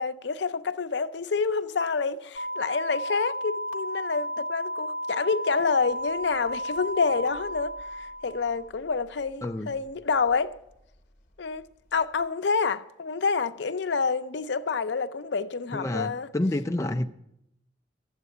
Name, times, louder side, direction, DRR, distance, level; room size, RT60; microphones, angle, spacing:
voice 1, 0.0-10.5 11.4-11.6 11.9-16.3, left 5 dB, 75° left, 0.6 m, -28 dB
sound 1, 2.4-8.7, equal, 45° left, 0.9 m, -33 dB
voice 2, 9.4-9.7 15.7-17.1, left 1 dB, 15° left, 0.4 m, -28 dB
13.0 x 8.0 x 8.4 m
head